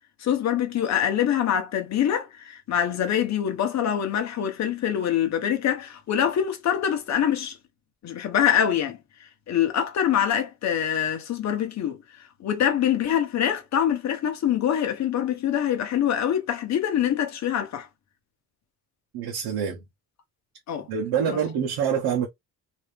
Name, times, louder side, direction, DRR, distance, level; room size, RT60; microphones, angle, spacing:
voice 1, 0.2-7.6 8.0-12.0 12.4-17.9 20.7-20.9 21.3-21.4, left 9 dB, 45° left, 1.0 m, -25 dB
voice 2, 19.1-19.8 20.9-22.3, right 7 dB, 80° right, 1.1 m, -26 dB
3.0 x 2.7 x 3.4 m
cardioid pair, 160°, 38 cm